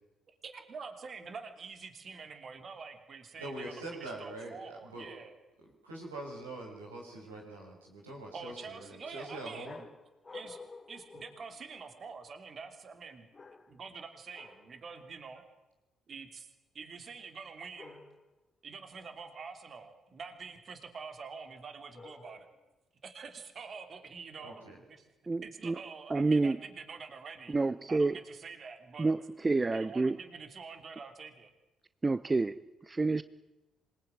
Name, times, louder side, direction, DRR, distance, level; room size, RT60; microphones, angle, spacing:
voice 1, 0.3-5.3 8.3-9.9 10.3-10.6 10.9-13.3 13.7-15.4 16.1-16.5 16.7-18.0 18.6-22.5 23.0-25.1 25.4-27.5 27.9-29.1 29.7-31.5, right 5 dB, 45° right, 7 dB, 3.2 m, -46 dB
voice 2, 3.4-5.1 5.6-9.8 24.4-24.8, right 1 dB, 85° right, -2 dB, 6.0 m, -44 dB
sound 1, 9.6-12.1 13.3-14.0 14.3-14.8 17.7-18.4 21.9-22.7, left 4 dB, 30° left, 2.0 m, -51 dB
voice 3, 25.3-25.8 26.1-26.6 27.5-28.2 29.0-30.2 32.0-33.2, right 3 dB, 25° right, 15 dB, 0.9 m, -29 dB
26.5 x 20.5 x 9.3 m, 1.0 s
figure-of-eight pair, 45°, 0 cm